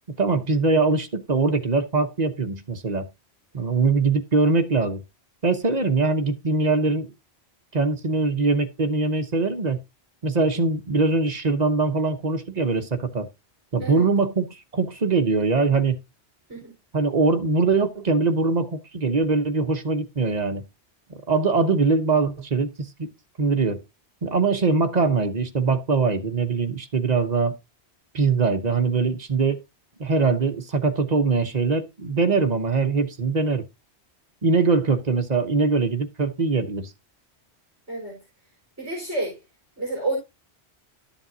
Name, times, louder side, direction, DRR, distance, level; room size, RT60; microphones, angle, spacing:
voice 1, 0.1-3.1 3.5-5.0 5.4-7.1 7.7-9.8 10.2-13.3 13.7-14.5 14.7-16.0 16.9-20.6 21.3-23.1 23.4-23.8 24.2-27.5 28.1-29.6 30.0-33.7 34.4-36.9, right 4 dB, 40° right, 1.0 m, -22 dB
voice 2, 37.9-38.2 38.8-39.4 39.8-40.2, right 2 dB, 15° right, 4.5 m, -29 dB
12.5 x 7.2 x 2.7 m
omnidirectional pair, 1.1 m